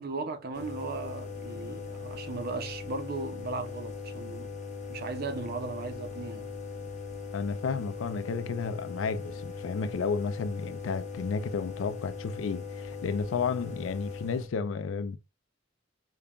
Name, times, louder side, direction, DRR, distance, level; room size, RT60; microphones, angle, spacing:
voice 1, 0.0-4.5 4.9-6.5, right 3 dB, 55° right, 0.6 m, -37 dB
sound 1, 0.5-14.5, left 5 dB, 40° left, 0.9 m, -40 dB
voice 2, 7.3-15.2, left 5 dB, 80° left, 0.4 m, -32 dB
5.2 x 2.3 x 2.3 m
head